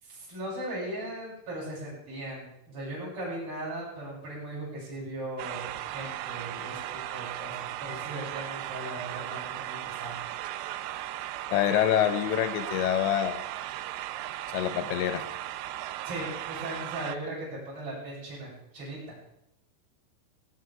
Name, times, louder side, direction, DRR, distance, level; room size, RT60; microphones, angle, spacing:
voice 1, 0.0-10.2 16.0-19.0, right 1 dB, 30° right, -7 dB, 8.2 m, -38 dB
sound 1, 5.4-17.2, right 14 dB, 85° right, 2.5 m, -37 dB
voice 2, 11.5-13.4 14.5-15.3, left 11 dB, 75° left, 10 dB, 3.0 m, -26 dB
18.5 x 17.5 x 3.6 m, 0.78 s
omnidirectional pair, 5.7 m